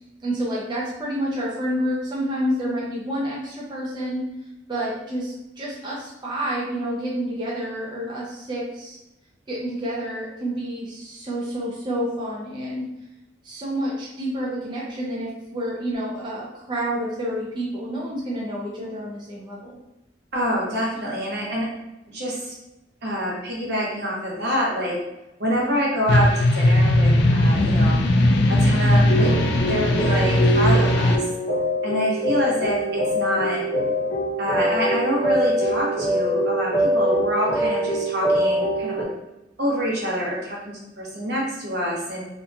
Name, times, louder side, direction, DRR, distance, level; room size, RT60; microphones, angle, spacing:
voice 1, 0.2-4.2 4.7-9.0 9.5-12.9 13.4-19.8, equal, 25° right, -5 dB, 0.4 m, -29 dB
voice 2, 20.3-21.7 22.1-22.5 23.0-25.0 25.4-28.0 28.5-29.3 29.7-31.3 31.8-33.6 34.4-39.0 39.6-42.2, equal, 65° right, -3 dB, 0.8 m, -26 dB
sound 1, 26.1-31.2, left 1 dB, 70° left, 0.4 m, -18 dB
sound 2, 29.1-39.0, equal, 45° left, 0.8 m, -24 dB
2.8 x 2.5 x 2.2 m, 0.93 s
head